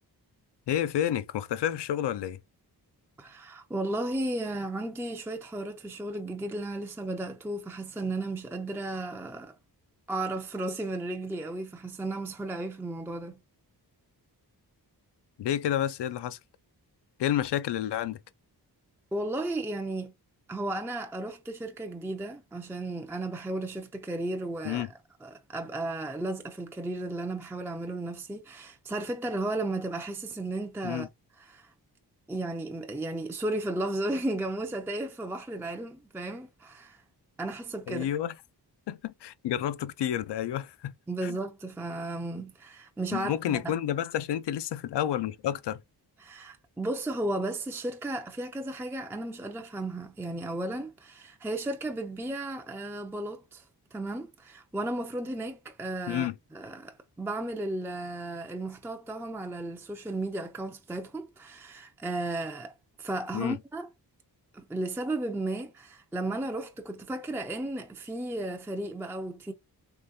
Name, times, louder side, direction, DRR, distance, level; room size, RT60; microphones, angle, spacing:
voice 1, 0.7-2.4 15.4-16.4 17.2-18.2 24.6-24.9 30.8-31.1 37.9-38.3 38.9-40.9 41.2-41.4 43.1-45.8 56.1-56.3 63.3-63.6, left 11 dB, 90° left, 0.5 m, -30 dB
voice 2, 3.2-9.6 10.1-13.4 19.1-20.1 20.5-24.9 25.2-31.1 31.4-31.7 32.3-37.0 37.4-38.1 41.1-43.7 46.2-53.6 53.9-62.7 63.0-63.9 64.5-69.5, right 2 dB, 5° right, 0.4 m, -34 dB
3.8 x 3.1 x 2.6 m
wide cardioid pair, 120°, 40 cm